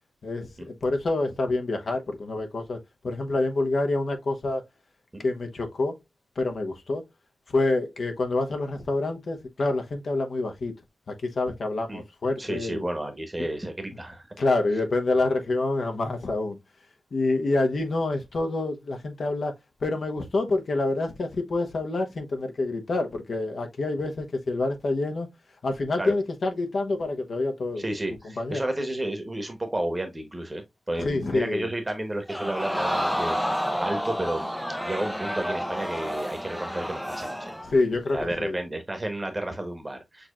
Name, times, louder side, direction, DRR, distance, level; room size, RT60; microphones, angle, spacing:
voice 1, 0.2-2.8 3.0-4.6 5.2-5.9 6.4-7.0 7.5-10.7 11.1-12.9 14.4-16.6 17.1-19.5 19.8-25.3 25.6-28.0 28.4-28.6 31.0-31.7 37.7-38.6, left 2 dB, 55° left, 0.9 m, -27 dB
voice 2, 12.4-14.3 26.0-26.2 27.8-34.5 34.8-37.5 38.1-40.3, right 1 dB, 20° right, 1.0 m, -32 dB
Crowd, 32.3-37.7 38.2-38.3, equal, ahead, 0.5 m, -30 dB
6.4 x 3.0 x 2.4 m
wide cardioid pair, 140°, 0 cm